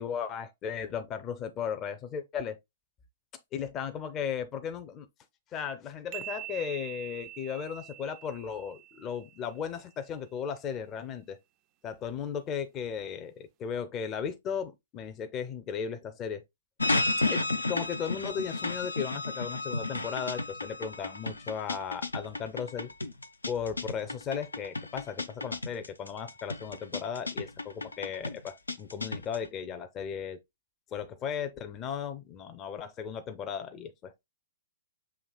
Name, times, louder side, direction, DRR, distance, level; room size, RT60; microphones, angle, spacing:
voice 1, 0.0-2.6 3.5-5.1 5.5-11.4 11.8-16.4 17.3-22.9 23.5-30.4 30.9-34.2, left 7 dB, 25° left, 0.5 m, -36 dB
sound 1, 6.1-9.7, right 15 dB, 35° right, 0.3 m, -44 dB
sound 2, 16.8-29.5, left 2 dB, 90° left, 0.4 m, -33 dB
7.0 x 2.9 x 2.2 m
figure-of-eight pair, 120°, 0 cm